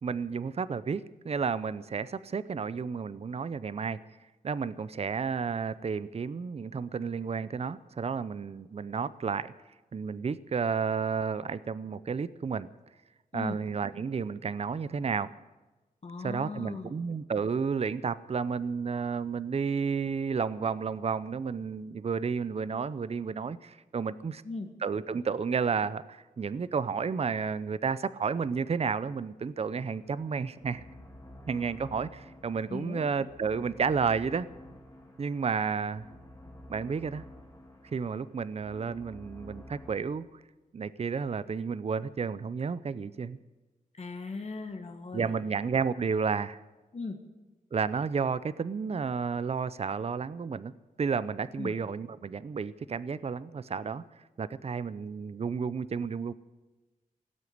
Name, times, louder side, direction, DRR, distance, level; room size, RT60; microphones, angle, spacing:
voice 1, 0.0-4.0 4.4-9.5 9.9-12.7 13.3-15.3 16.2-24.4 24.8-30.8 31.5-34.5 35.2-36.0 36.7-37.2 37.9-40.2 40.7-43.4 45.1-46.6 47.7-50.7 51.0-54.0 54.4-56.3, right 5 dB, 45° right, 16 dB, 0.6 m, -31 dB
voice 2, 16.0-16.9 24.4-24.7 32.7-33.0 44.0-45.3 46.9-47.2 51.6-51.8, left 3 dB, 45° left, 4 dB, 1.6 m, -38 dB
sound 1, 29.9-39.9, left 1 dB, 25° left, 2.9 m, -50 dB
18.0 x 8.2 x 9.4 m, 1.2 s
wide cardioid pair, 105°, 15 cm